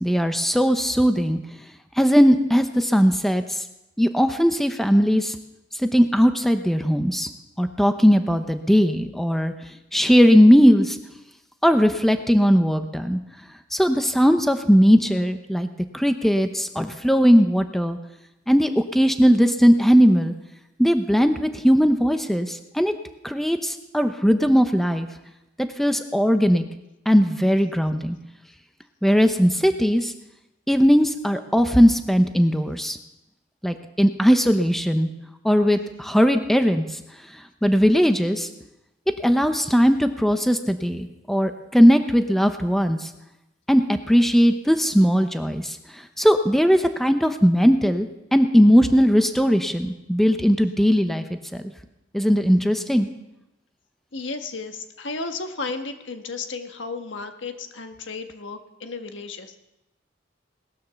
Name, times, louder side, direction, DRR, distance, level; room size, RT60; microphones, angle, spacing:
voice 1, 0.0-1.4 2.0-3.6 4.0-5.4 5.7-7.3 7.6-9.5 9.9-11.0 11.6-13.2 13.7-15.7 15.9-18.0 18.5-20.3 20.8-22.9 23.2-25.1 25.6-26.6 27.1-28.2 29.0-30.1 30.7-33.0 33.6-35.1 35.4-37.0 37.3-38.5 39.2-43.1 43.7-51.6 52.1-53.1, equal, ahead, 8 dB, 0.7 m, -19 dB
voice 2, 54.1-59.6, left 3 dB, 90° left, 6 dB, 1.5 m, -33 dB
18.5 x 10.0 x 6.9 m, 0.92 s
head